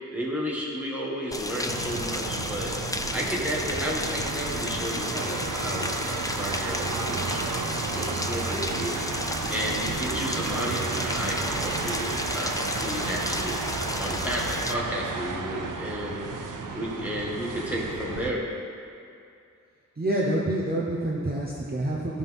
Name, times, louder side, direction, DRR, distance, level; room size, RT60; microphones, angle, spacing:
voice 1, 0.1-2.8 3.1-12.5 12.8-18.4, equal, 5° right, -6 dB, 2.0 m, -32 dB
Rain, 1.3-14.7, left 1 dB, 10° left, 0.5 m, -33 dB
sound 1, 1.7-18.3, right 4 dB, 85° right, 0.7 m, -33 dB
voice 2, 20.0-22.2, right 1 dB, 30° right, -4 dB, 0.9 m, -27 dB
15.0 x 5.8 x 3.6 m, 2.5 s
wide cardioid pair, 95°, 31 cm